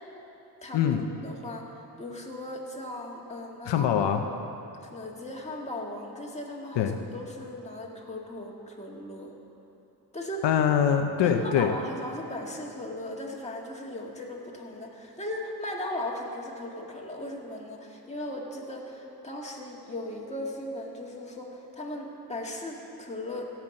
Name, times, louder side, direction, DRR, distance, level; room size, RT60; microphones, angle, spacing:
voice 1, 0.6-3.9 4.3-4.4 4.8-9.3 10.1-10.5 11.2-23.5, left 1 dB, 15° left, -2 dB, 2.0 m, -37 dB
voice 2, 3.7-4.2 6.8-7.0 10.4-11.7, left 8 dB, 90° left, 5 dB, 0.8 m, -23 dB
16.5 x 6.0 x 7.2 m, 3.0 s
cardioid pair, 85°, 42 cm